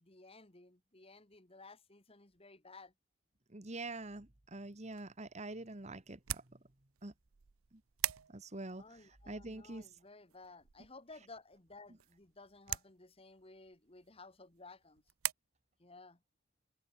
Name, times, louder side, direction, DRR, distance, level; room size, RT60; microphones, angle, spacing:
voice 1, 0.0-2.9 8.8-15.0 15.8-16.2, left 3 dB, 25° left, 1.9 m, -56 dB
voice 2, 3.5-6.4 7.0-7.1 8.3-9.0 9.3-9.9, right 2 dB, 30° right, 1.4 m, -45 dB
sound 1, 4.8-15.3, right 14 dB, 75° right, 0.8 m, -45 dB
head